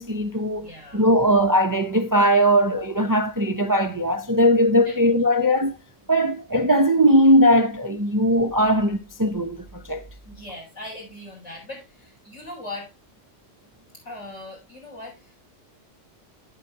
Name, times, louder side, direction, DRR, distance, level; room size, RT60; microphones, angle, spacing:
voice 1, 0.0-0.7 0.9-5.8 6.1-10.0, equal, 25° right, 0.5 m, -19 dB
voice 2, 0.6-1.1 4.8-5.2 10.2-12.9 14.0-15.4, left 1 dB, 75° left, 7.9 m, -39 dB
11.5 x 9.2 x 2.9 m
omnidirectional pair, 1.3 m